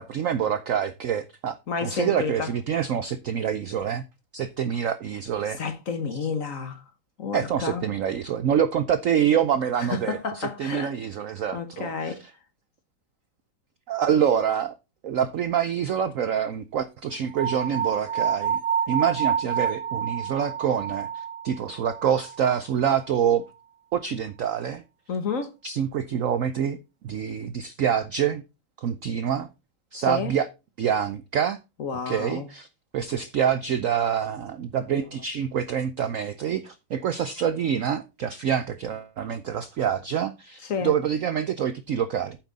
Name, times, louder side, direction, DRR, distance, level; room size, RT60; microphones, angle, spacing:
voice 1, 0.0-4.0 4.3-5.6 7.3-12.2 13.9-14.7 15.0-18.6 18.9-23.4 23.9-24.8 25.6-26.8 27.0-28.4 28.8-29.5 29.9-30.5 30.8-31.6 32.1-32.7 32.9-42.4, right 8 dB, 70° right, 0.8 m, -26 dB
voice 2, 1.7-2.5 5.6-6.8 7.2-7.8 9.8-10.9 11.5-12.2 25.1-25.5 29.9-30.3 31.8-32.5 40.6-40.9, left 5 dB, 50° left, 1.4 m, -30 dB
sound 1, 17.4-22.5, right 7 dB, 90° right, 1.7 m, -28 dB
9.0 x 7.4 x 4.0 m
omnidirectional pair, 2.1 m